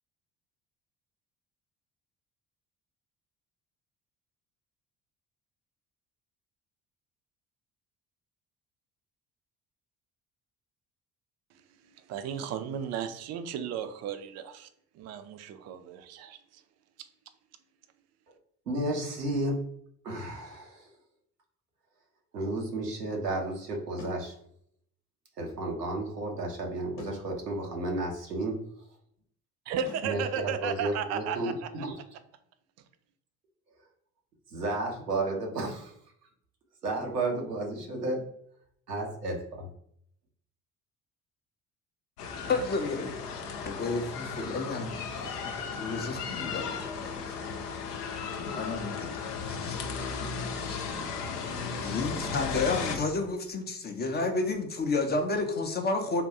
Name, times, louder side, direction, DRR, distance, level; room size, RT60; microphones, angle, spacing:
voice 1, 11.5-14.7 14.9-16.6 17.0-17.1 29.7-31.9, right 8 dB, 35° right, 10 dB, 0.4 m, -35 dB
voice 2, 18.7-19.6 20.0-20.9 22.3-24.3 25.4-28.6 30.0-31.5 31.8-31.9 34.5-35.9 36.8-38.3 38.9-39.7, right 2 dB, 85° right, 0 dB, 0.7 m, -32 dB
sound 1, 24.0-24.3 27.0-27.3 29.9-30.2, left 2 dB, 40° left, 0.9 m, -45 dB
sound 2, 42.2-53.0, left 5 dB, 80° left, 0.6 m, -35 dB
voice 3, 42.5-43.2 43.7-46.7 48.6-49.2 49.5-49.8 50.6-50.8 51.8-56.2, left 3 dB, 20° left, 5 dB, 0.4 m, -31 dB
3.5 x 2.2 x 2.8 m, 0.69 s
figure-of-eight pair, 50°, 46 cm